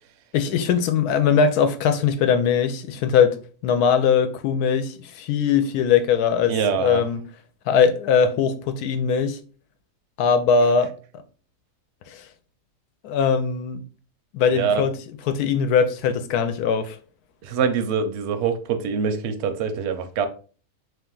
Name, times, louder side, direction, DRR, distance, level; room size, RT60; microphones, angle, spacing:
voice 1, 0.3-3.4 3.6-7.2 7.7-9.4 10.2-10.9 12.1-12.3 13.0-13.8 14.3-15.0 15.3-17.0, left 6 dB, 90° left, 1.1 m, -20 dB
voice 2, 6.5-7.0 14.5-14.9 17.4-20.3, right 6 dB, 65° right, 0.7 m, -24 dB
3.4 x 2.8 x 3.7 m
omnidirectional pair, 1.6 m